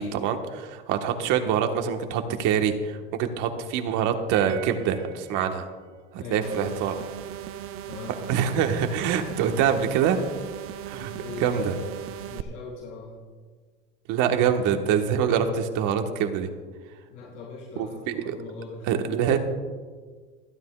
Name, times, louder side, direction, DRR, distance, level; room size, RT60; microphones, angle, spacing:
voice 1, 0.0-5.7 6.1-6.9 8.3-10.2 10.9-11.1 11.4-11.7 14.1-16.5 17.8-18.3 18.9-19.4, right 8 dB, 60° right, 5 dB, 1.4 m, -25 dB
sound 1, 4.3-6.0, right 12 dB, 85° right, 0.7 m, -38 dB
voice 2, 6.2-6.7 7.9-8.1 11.1-11.9 12.3-13.2 17.1-18.9, left 4 dB, 85° left, -6 dB, 4.5 m, -40 dB
sound 2, 6.4-12.4, right 11 dB, 40° right, 0.6 m, -38 dB
27.5 x 9.4 x 2.4 m, 1.5 s
supercardioid pair, 105°, 35 cm